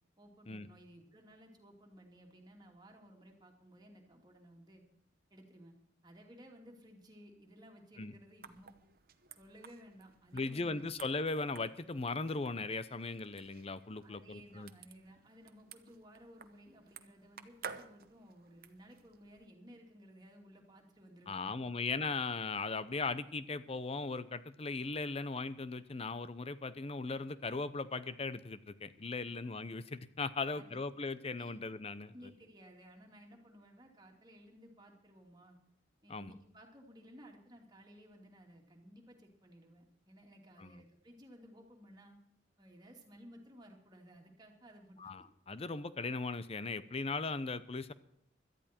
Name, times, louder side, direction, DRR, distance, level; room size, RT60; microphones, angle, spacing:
voice 1, 0.2-4.8 5.3-5.7 6.0-8.7 9.3-10.9 13.9-21.7 29.1-29.4 30.3-30.8 31.4-31.8 32.1-35.6 36.0-42.2 42.6-45.0, equal, 25° right, 1 dB, 2.6 m, -57 dB
sound 1, 8.4-19.5, right 6 dB, 55° right, 0.9 m, -54 dB
voice 2, 10.3-14.7 21.3-32.1 36.1-36.3 40.6-40.8 45.0-47.9, left 3 dB, 35° left, 15 dB, 0.7 m, -38 dB
17.5 x 12.5 x 4.4 m, 0.73 s
head